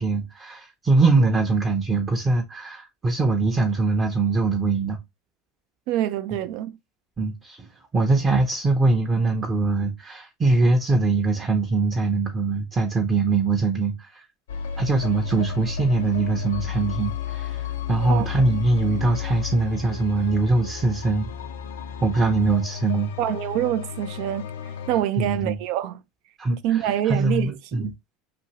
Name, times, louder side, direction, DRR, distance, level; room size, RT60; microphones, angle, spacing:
voice 1, 0.0-5.0 7.2-7.7 7.9-14.2 14.8-21.3 22.0-23.1 25.2-25.6 26.4-27.9, right 3 dB, 30° right, 0.7 m, -22 dB
voice 2, 5.9-6.7 18.1-18.3 23.2-24.5 24.9-26.0 26.6-27.9, right 12 dB, 65° right, 0.3 m, -25 dB
sound 1, 14.5-25.0, left 7 dB, 80° left, 0.4 m, -32 dB
2.7 x 2.6 x 2.9 m
hypercardioid pair, 85°, 0 cm